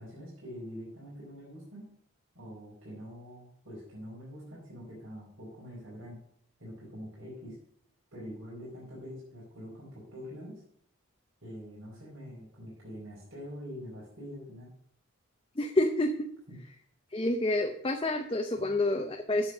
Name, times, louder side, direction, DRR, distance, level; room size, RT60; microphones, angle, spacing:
voice 1, 0.0-1.9 2.3-6.2 6.6-7.5 8.1-10.6 11.4-14.7 16.5-16.6 18.6-18.7, equal, 70° right, -7 dB, 4.7 m, -45 dB
voice 2, 15.6-16.3 17.1-19.5, left 1 dB, 25° left, 4 dB, 0.7 m, -28 dB
8.7 x 7.3 x 6.1 m, 0.65 s
head